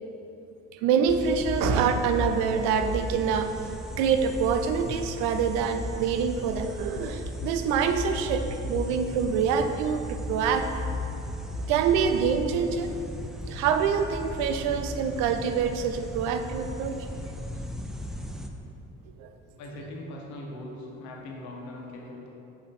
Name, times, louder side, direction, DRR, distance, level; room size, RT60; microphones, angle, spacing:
voice 1, 0.7-3.6 4.0-10.7 11.5-13.0 13.5-17.0 19.2-19.3, right 6 dB, 90° right, 8 dB, 0.5 m, -26 dB
sound 1, 1.1-18.5, left 1 dB, ahead, 0.3 m, -36 dB
voice 2, 19.6-22.3, left 1 dB, 80° left, -1 dB, 1.1 m, -40 dB
7.9 x 3.0 x 4.1 m, 2.7 s
supercardioid pair, 90°, 29 cm